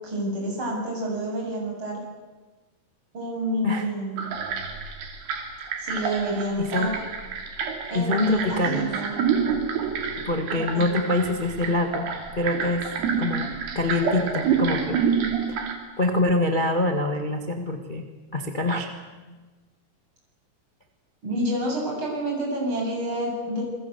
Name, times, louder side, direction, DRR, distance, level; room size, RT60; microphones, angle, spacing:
voice 1, 0.0-2.0 3.1-4.3 5.8-6.9 7.9-9.2 10.5-10.8 21.2-23.6, right 1 dB, 30° right, -2 dB, 8.7 m, -28 dB
sound 1, 4.2-15.7, right 6 dB, 85° right, 4.8 m, -28 dB
voice 2, 6.6-7.0 7.9-8.9 10.2-12.1 12.3-12.9 13.2-15.0 15.5-15.6 16.0-18.0 18.3-18.9 19.3-19.4, left 2 dB, 50° left, 4 dB, 0.5 m, -25 dB
28.0 x 21.5 x 8.2 m, 1.3 s
omnidirectional pair, 4.5 m